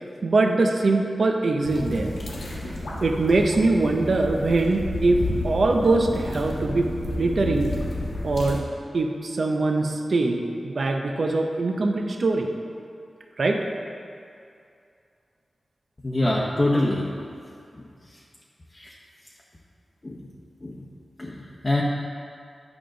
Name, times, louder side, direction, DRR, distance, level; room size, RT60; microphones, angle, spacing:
voice 1, 0.2-2.1 3.0-6.9 7.2-7.8 8.2-8.6 8.9-12.5 13.4-13.6, right 2 dB, 60° right, 3 dB, 0.6 m, -22 dB
sound 1, 1.6-8.6, left 1 dB, 85° left, 1.4 m, -31 dB
voice 2, 16.0-17.0 17.7-17.8 18.7-18.9 20.0-20.2 20.6-20.8 21.2-21.8, left 1 dB, 30° left, -4 dB, 0.8 m, -25 dB
8.9 x 5.1 x 3.8 m, 2.5 s
wide cardioid pair, 70°, 0 cm